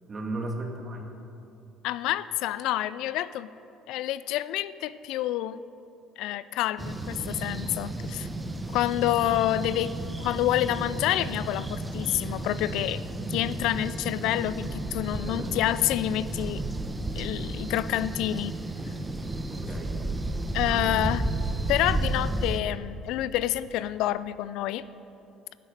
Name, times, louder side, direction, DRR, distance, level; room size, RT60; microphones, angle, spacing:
voice 1, 0.1-1.1 15.4-15.5 19.5-20.0 20.6-21.1, right 2 dB, 35° right, 2 dB, 2.1 m, -35 dB
voice 2, 1.8-3.5 3.9-5.6 6.2-8.3 8.7-13.0 13.3-16.6 17.1-18.6 20.5-21.2 21.7-24.9, left 13 dB, 75° left, 16 dB, 0.3 m, -28 dB
sound 1, 6.8-22.6, right 2 dB, 15° right, 1.0 m, -32 dB
13.0 x 6.4 x 9.8 m, 2.8 s
supercardioid pair, 85°, 0 cm